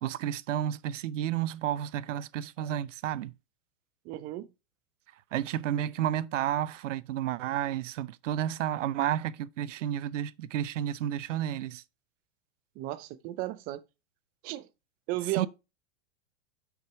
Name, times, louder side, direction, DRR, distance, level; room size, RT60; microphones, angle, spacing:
voice 1, 0.0-3.3 5.3-11.8 15.4-15.5, right 11 dB, 85° right, 0.6 m, -31 dB
voice 2, 4.0-4.5 12.8-13.8 14.4-14.7 15.1-15.5, right 15 dB, 25° right, 0.4 m, -34 dB
6.1 x 5.9 x 4.6 m
supercardioid pair, 145°, 36 cm